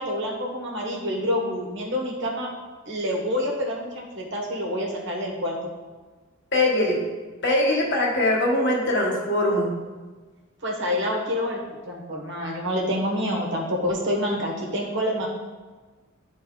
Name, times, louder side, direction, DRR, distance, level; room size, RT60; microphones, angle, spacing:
voice 1, 0.0-2.5 2.9-5.6 10.6-11.6 11.9-15.3, equal, 55° right, -1 dB, 1.4 m, -27 dB
voice 2, 6.5-7.0 7.4-9.7, left 1 dB, 50° left, -2 dB, 1.3 m, -22 dB
9.9 x 4.1 x 3.9 m, 1.3 s
head